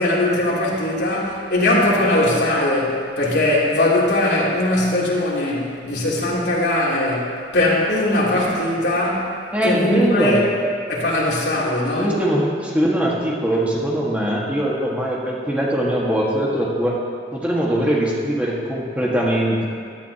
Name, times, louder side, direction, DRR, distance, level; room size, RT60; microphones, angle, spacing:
voice 1, 0.0-9.3 9.6-10.5 10.9-12.1, left 1 dB, 75° left, -6 dB, 3.1 m, -20 dB
voice 2, 9.5-10.4 11.9-16.9 17.3-19.7, right 1 dB, 10° right, -5 dB, 1.6 m, -21 dB
16.5 x 13.0 x 2.9 m, 2.1 s
head